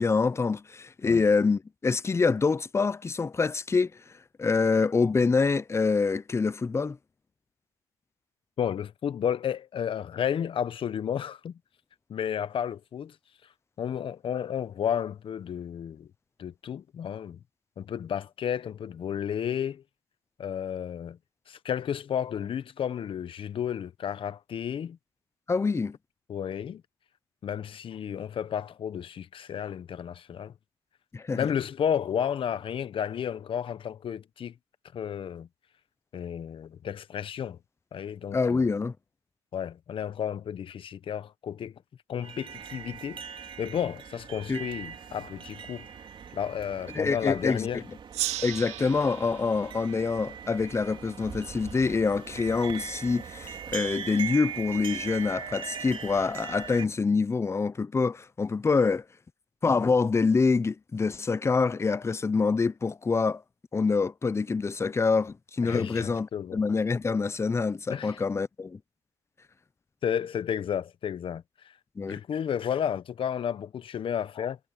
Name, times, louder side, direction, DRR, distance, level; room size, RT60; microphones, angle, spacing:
voice 1, 0.0-3.9 4.4-7.0 25.5-25.9 31.1-31.5 38.3-38.9 44.5-44.6 46.9-47.8 48.4-59.0 59.6-63.4 63.7-68.8 72.0-72.2, left 4 dB, 25° left, 0.7 m, -26 dB
voice 2, 8.6-11.5 12.1-13.1 13.8-16.1 16.4-17.4 17.8-19.8 20.4-21.2 21.5-25.0 26.3-26.8 27.4-30.5 31.3-34.5 34.9-35.5 36.1-37.6 37.9-38.6 39.5-41.7 42.1-43.2 43.6-45.9 46.3-47.8 65.6-66.6 67.9-68.2 70.0-71.4 72.1-74.6, left 8 dB, 50° left, 1.1 m, -32 dB
sound 1, 42.2-56.8, right 7 dB, 50° right, 3.2 m, -40 dB
Gong, 48.1-51.3, right 14 dB, 80° right, 1.4 m, -37 dB
supercardioid pair, 75°, 11 cm